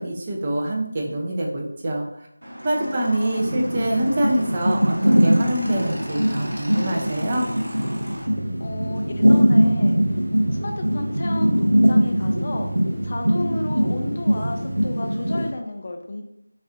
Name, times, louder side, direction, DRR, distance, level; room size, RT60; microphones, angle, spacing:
voice 1, 0.0-2.3 2.6-7.5, right 1 dB, 25° right, -2 dB, 0.5 m, -25 dB
Motorcycle / Engine, 2.4-8.3, equal, 65° right, 1.0 m, -35 dB
voice 2, 2.8-3.5 8.6-10.2 10.5-12.7 13.0-16.2, left 2 dB, 35° left, 4 dB, 0.4 m, -32 dB
sound 1, 3.4-15.5, equal, 85° right, 0.7 m, -21 dB
sound 2, 8.2-14.9, right 2 dB, 85° left, 0.8 m, -35 dB
4.1 x 2.4 x 2.5 m, 0.79 s
figure-of-eight pair, 170°, 0 cm